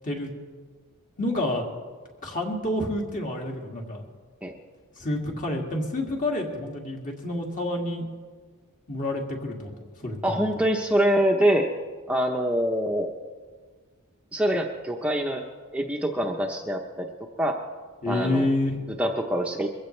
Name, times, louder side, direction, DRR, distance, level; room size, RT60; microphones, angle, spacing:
voice 1, 1.2-1.6 2.2-4.0 5.0-8.1 8.9-9.7 10.0-10.5 18.0-18.8, left 1 dB, 35° left, 0 dB, 2.3 m, -28 dB
voice 2, 10.2-11.7 12.1-13.1 14.3-15.4 15.7-17.1 17.4-17.6 18.1-18.5 19.0-19.7, equal, 5° right, 1 dB, 0.8 m, -24 dB
22.5 x 15.5 x 3.3 m, 1.5 s
head